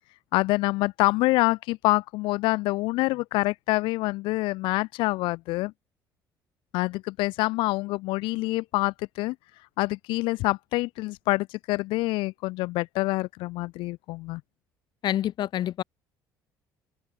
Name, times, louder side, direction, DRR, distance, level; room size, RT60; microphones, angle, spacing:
voice 1, 0.3-5.7 6.7-9.4 9.8-14.4, left 21 dB, 85° left, 3.9 m, -26 dB
voice 2, 15.0-15.8, left 12 dB, 60° left, 4.8 m, -27 dB
supercardioid pair, 90°, 8 cm